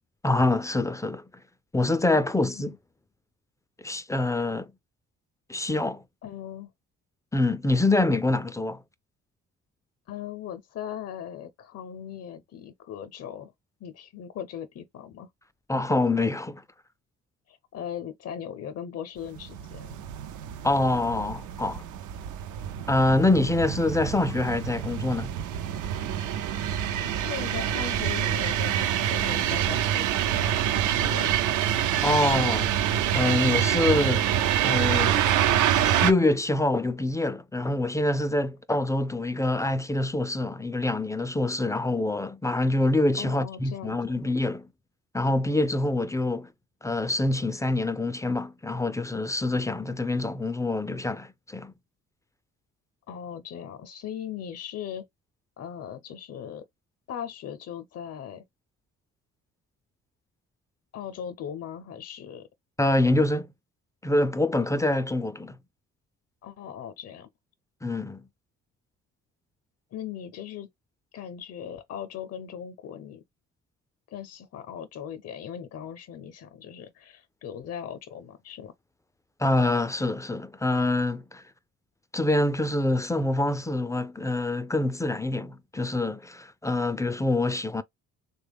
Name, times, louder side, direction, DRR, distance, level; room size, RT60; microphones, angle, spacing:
voice 1, 0.2-1.2 1.7-2.8 3.8-4.7 5.5-6.0 7.3-8.8 15.7-16.6 20.6-21.8 22.9-25.3 32.0-32.7 33.1-34.3 34.6-35.2 36.0-44.7 45.1-46.5 46.8-51.7 62.8-63.5 64.0-65.6 67.8-68.2 79.4-81.4 82.1-87.8, left 2 dB, 10° left, 0.3 m, -25 dB
voice 2, 6.2-6.7 10.1-13.5 13.8-15.3 17.5-20.0 27.1-30.6 31.0-31.4 43.2-44.0 53.1-55.0 55.6-56.6 57.1-58.4 60.9-62.5 66.4-67.3 69.9-70.7 71.1-73.2 74.1-78.7, left 9 dB, 55° left, 0.6 m, -39 dB
sound 1, 19.4-36.1, right 10 dB, 80° right, 0.5 m, -26 dB
3.3 x 2.2 x 3.4 m
cardioid pair, 90°, 30 cm